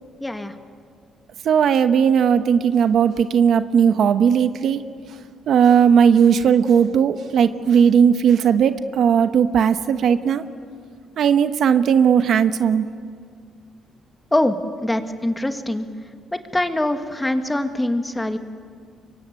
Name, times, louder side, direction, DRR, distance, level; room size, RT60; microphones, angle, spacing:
voice 1, 0.2-0.5 14.3-15.9 16.3-18.4, left 1 dB, 10° left, 7 dB, 1.9 m, -23 dB
voice 2, 1.4-4.8 5.5-10.4 11.2-12.9, right 7 dB, 65° right, 10 dB, 1.0 m, -17 dB
24.5 x 23.0 x 9.4 m, 2.1 s
cardioid pair, 90°, 0 cm